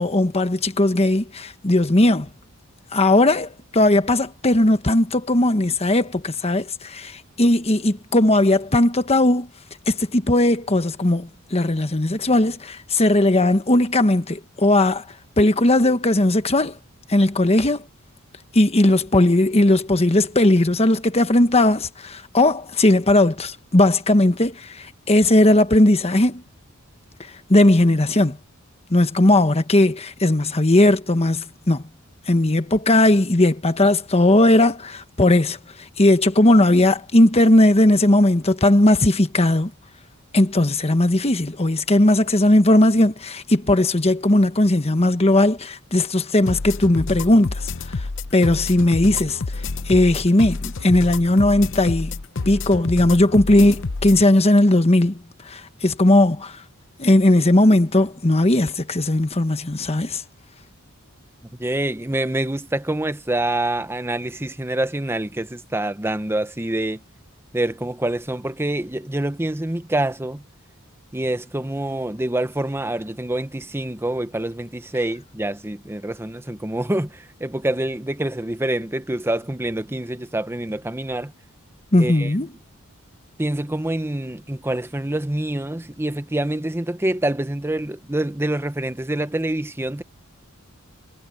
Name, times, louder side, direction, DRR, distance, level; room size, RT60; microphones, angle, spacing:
voice 1, 0.0-2.3 2.9-7.1 7.4-9.5 9.9-15.0 15.4-16.8 17.1-17.8 18.5-24.5 25.1-26.4 27.5-28.4 28.9-31.8 32.3-35.6 36.0-39.7 40.3-47.5 48.3-49.4 49.9-52.1 52.5-55.2 55.5-56.5 57.0-60.2 81.9-82.5, left 1 dB, 30° left, 1.3 m, -17 dB
sound 1, 46.5-54.2, left 3 dB, 65° left, 0.8 m, -29 dB
voice 2, 61.6-67.0 67.5-70.4 71.1-81.3 82.0-82.3 83.4-90.0, right 1 dB, 10° right, 0.9 m, -26 dB
head